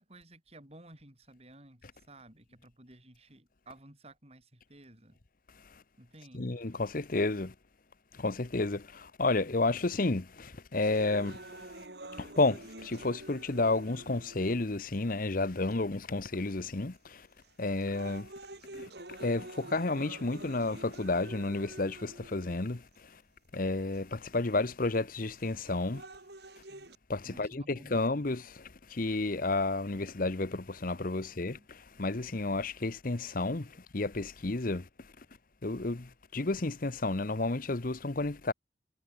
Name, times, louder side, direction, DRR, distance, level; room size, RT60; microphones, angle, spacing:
voice 1, 0.0-5.2 6.0-6.6 27.2-28.3 31.5-31.7, right 1 dB, 35° right, 6.0 m, -55 dB
voice 2, 6.3-7.5 8.1-11.5 12.2-17.3 17.6-18.3 18.7-18.9 19.2-22.8 23.5-26.0 27.1-34.9 35.6-38.5, left 2 dB, 50° left, 1.0 m, -31 dB
sound 1, 10.9-15.0 15.7-15.8 16.6-17.0 17.4-23.0 23.9-24.0 25.4-27.0, right 2 dB, 65° right, 4.8 m, -48 dB
head